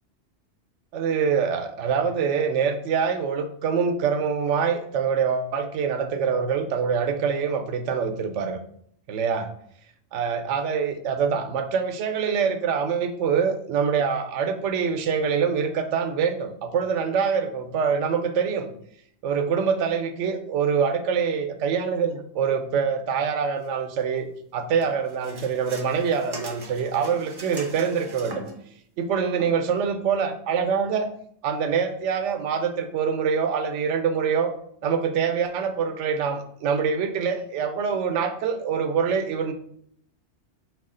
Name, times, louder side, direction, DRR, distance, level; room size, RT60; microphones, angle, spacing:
voice 1, 0.9-8.6 9.1-9.5 10.1-18.7 19.2-28.4 29.0-31.1 31.4-34.5 34.8-39.5, right 6 dB, 85° right, 7 dB, 0.9 m, -25 dB
sound 1, 24.8-28.7 29.4-29.5, right 2 dB, 40° right, 0.3 m, -40 dB
4.8 x 2.4 x 3.7 m, 0.67 s
omnidirectional pair, 1.2 m